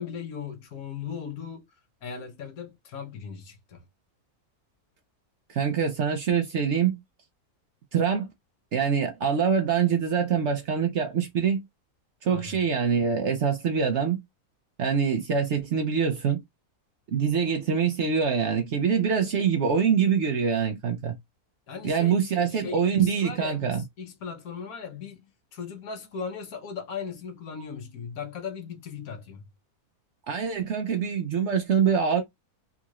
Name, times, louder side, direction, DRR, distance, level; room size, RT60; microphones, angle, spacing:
voice 1, 0.0-1.7 2.0-3.8 12.3-12.6 21.7-29.5, left 6 dB, 70° left, 1.4 m, -38 dB
voice 2, 5.5-7.0 7.9-8.3 8.7-11.6 12.2-14.2 14.8-16.4 17.1-21.2 21.8-23.8 30.3-32.2, right 6 dB, 60° right, 0.8 m, -24 dB
3.7 x 2.4 x 3.0 m
omnidirectional pair, 1.6 m